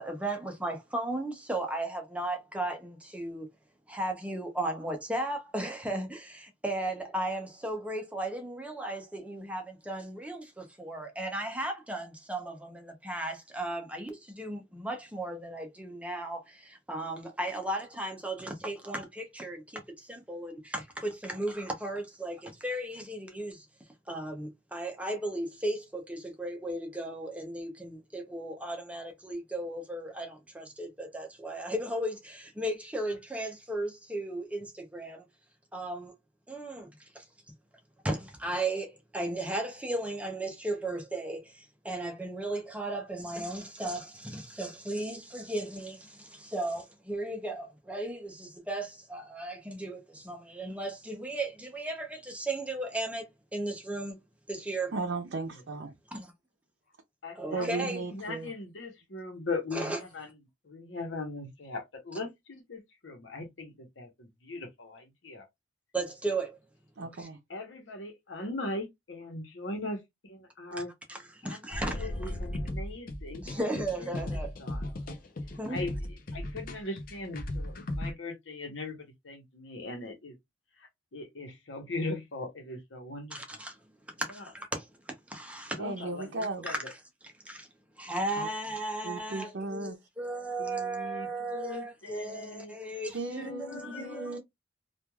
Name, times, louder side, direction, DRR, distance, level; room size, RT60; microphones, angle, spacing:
voice 1, 0.0-3.5 3.9-23.7 24.1-35.2 35.7-36.1 36.5-37.2 38.0-54.2 54.5-54.9 56.1-56.3 57.4-58.0 59.7-60.0 65.9-66.6 67.2-67.3 71.1-72.4 73.4-74.5 75.6-75.8 83.3-83.8 84.2-85.8 86.7-86.8 87.4-87.7 88.0-94.4, right 1 dB, 5° right, 0.6 m, -36 dB
voice 2, 54.9-55.9 57.5-58.5 67.0-67.4 85.8-86.7 88.3-88.5 89.0-89.9 93.1-94.4, right 3 dB, 75° right, 0.6 m, -36 dB
voice 3, 57.2-60.3 60.6-65.5 67.0-67.1 67.5-70.9 71.5-73.7 74.0-74.8 75.7-80.4 80.8-83.6 85.8-86.8 90.6-92.7 93.4-94.4, left 2 dB, 80° left, 1.0 m, -40 dB
sound 1, 71.7-78.1, left 1 dB, 50° left, 0.5 m, -36 dB
3.1 x 2.4 x 2.2 m
head